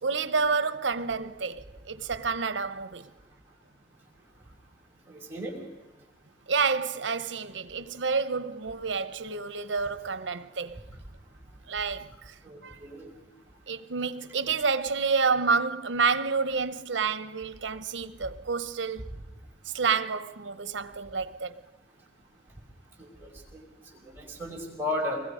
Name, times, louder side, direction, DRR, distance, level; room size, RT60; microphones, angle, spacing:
voice 1, 0.0-3.1 6.5-10.8 11.7-12.3 12.6-12.8 13.7-19.0 19.6-21.6, right 5 dB, 75° right, 0.9 m, -29 dB
voice 2, 5.1-5.6 8.7-8.8 12.4-13.1 23.0-23.6 23.9-25.2, left 1 dB, 15° right, 4.9 m, -35 dB
25.0 x 21.0 x 5.0 m
head